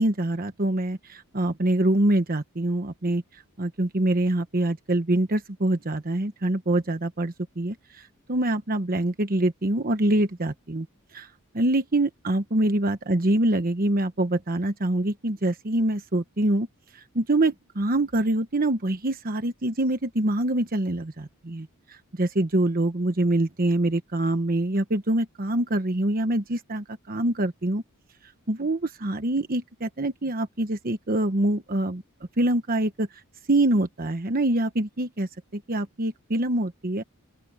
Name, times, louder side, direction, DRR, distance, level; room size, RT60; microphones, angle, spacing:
voice 1, 0.0-3.2 3.6-10.9 11.1-11.3 11.5-16.7 16.9-27.8 28.5-32.0 32.4-33.1 33.5-37.0, right 1 dB, 40° right, 1.1 m, -25 dB
open air
head